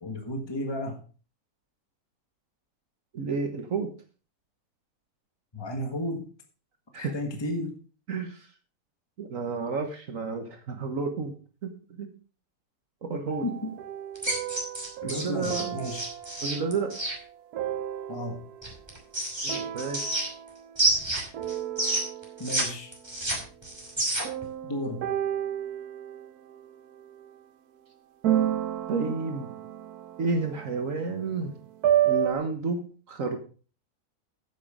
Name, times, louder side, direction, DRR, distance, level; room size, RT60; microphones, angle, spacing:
voice 1, 0.0-1.0 5.5-6.2 7.0-7.7 13.4-13.7 15.0-16.1 18.1-18.4 22.4-22.9 24.7-25.1, left 1 dB, 15° left, 3 dB, 1.6 m, -33 dB
voice 2, 3.1-3.9 6.9-7.1 8.1-8.5 9.2-11.3 11.6-12.1 13.0-13.5 15.0-15.8 16.4-16.9 19.4-20.1 28.9-29.5 30.2-31.5 32.0-33.4, right 4 dB, 60° right, 5 dB, 1.7 m, -31 dB
sound 1, 13.3-18.8 19.5-21.1 21.3-22.6 24.2-27.3 28.2-32.3, right 11 dB, 85° right, 1.3 m, -32 dB
sound 2, 14.2-17.2 18.6-20.5 20.8-22.6 22.9-24.4, right 1 dB, 15° right, 2.9 m, -29 dB
9.5 x 8.3 x 5.0 m, 0.38 s
omnidirectional pair, 1.6 m